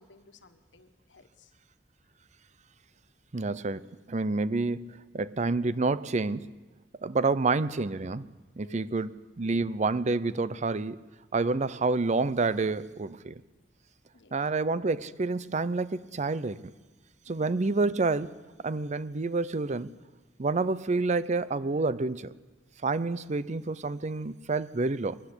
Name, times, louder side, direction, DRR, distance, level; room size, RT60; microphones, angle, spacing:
voice 1, 0.0-1.5 7.1-7.4 8.6-8.9 14.1-14.4 17.3-17.5, left 2 dB, 80° left, 1.5 m, -57 dB
voice 2, 3.3-6.5 7.0-8.3 8.6-11.0 11.3-13.4 14.3-16.6 17.3-18.3 18.6-19.9 20.4-22.3 22.8-25.2, right 3 dB, 40° right, 0.6 m, -28 dB
22.5 x 13.0 x 9.9 m
head